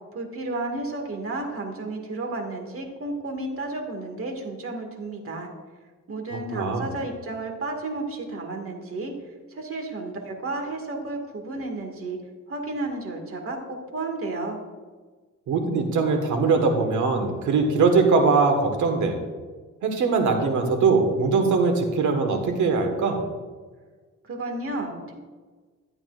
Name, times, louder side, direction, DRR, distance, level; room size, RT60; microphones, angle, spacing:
voice 1, 0.1-5.5 6.1-9.1 9.5-12.2 12.5-14.6 24.3-25.1, right 2 dB, 45° right, 3 dB, 2.0 m, -32 dB
voice 2, 6.5-6.9 15.5-19.2 19.8-23.2, right 4 dB, 75° right, 4 dB, 1.6 m, -21 dB
12.5 x 8.7 x 2.5 m, 1.4 s
cardioid pair, 90°, 30 cm